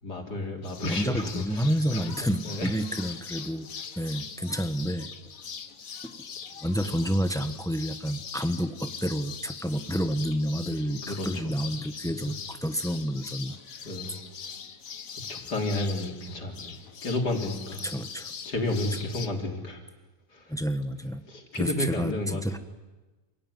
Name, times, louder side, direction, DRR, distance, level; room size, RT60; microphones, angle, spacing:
voice 1, 0.0-2.7 6.8-7.1 11.0-11.5 12.2-12.3 13.8-14.2 15.1-17.9 18.5-19.8 20.3-20.5 21.3-22.4, left 2 dB, 85° left, 1 dB, 4.1 m, -32 dB
sound 1, 0.6-19.3, left 6 dB, 60° left, 1.6 m, -42 dB
voice 2, 0.8-3.7 4.0-5.1 6.0-6.1 6.6-13.6 17.8-18.3 20.5-21.2 21.6-22.6, equal, 5° left, 9 dB, 0.9 m, -29 dB
27.5 x 17.5 x 9.5 m, 1.2 s
omnidirectional pair, 1.7 m